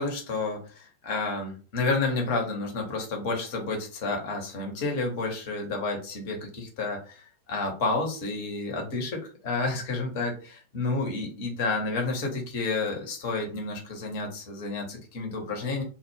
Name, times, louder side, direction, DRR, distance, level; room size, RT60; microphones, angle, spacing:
voice 1, 0.0-15.8, left 3 dB, 45° left, 2 dB, 0.9 m, -30 dB
2.2 x 2.0 x 3.2 m, 0.37 s
figure-of-eight pair, 90°, 0 cm